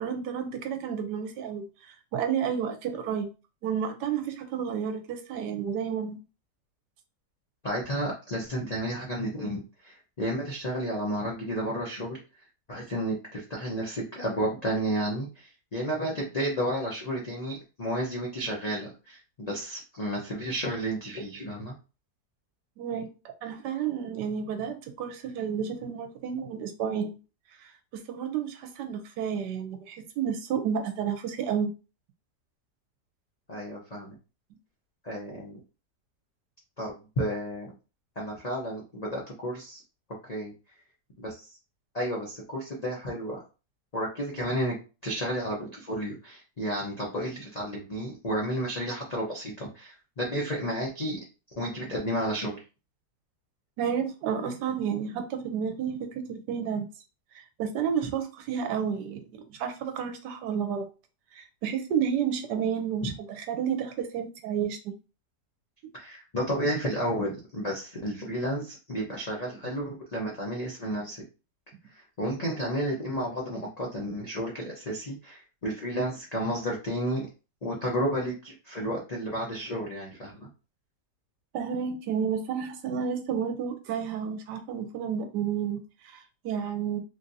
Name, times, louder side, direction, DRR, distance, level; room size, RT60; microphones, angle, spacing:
voice 1, 0.0-3.3 3.6-6.2 22.8-23.1 23.4-27.2 27.6-27.7 28.1-31.7 53.8-56.9 57.3-60.9 61.3-64.8 65.8-65.9 81.5-87.0, right 7 dB, 80° right, 1.2 m, -31 dB
voice 2, 7.6-12.2 12.7-21.7 33.5-34.2 35.0-35.6 36.8-37.7 38.2-39.8 40.3-40.5 41.2-41.5 41.9-43.4 43.9-44.8 45.0-51.2 51.6-52.6 65.9-71.2 71.9-77.3 77.6-80.5, equal, 65° left, 0.4 m, -32 dB
3.3 x 2.6 x 2.6 m
omnidirectional pair, 1.8 m